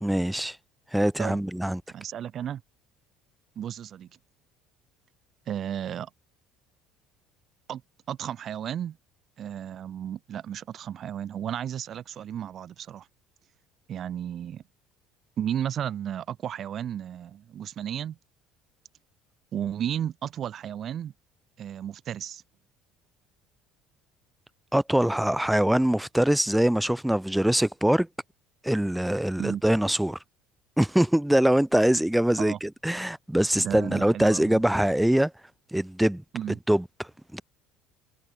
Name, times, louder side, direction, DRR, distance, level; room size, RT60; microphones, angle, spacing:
voice 1, 0.0-0.6 0.9-1.8 24.7-28.1 28.6-30.2 30.8-35.3 35.7-36.2 36.7-36.8 37.3-37.4, right 1 dB, 5° right, 1.1 m, -23 dB
voice 2, 1.9-2.6 3.6-4.1 5.5-6.1 7.7-7.8 8.1-9.0 9.4-13.1 13.9-14.6 15.4-18.2 19.5-21.1 21.6-22.4 29.4-29.6 32.4-32.6 33.6-34.6 36.3-36.6, right 10 dB, 45° right, 7.0 m, -33 dB
figure-of-eight pair, 60°, 0 cm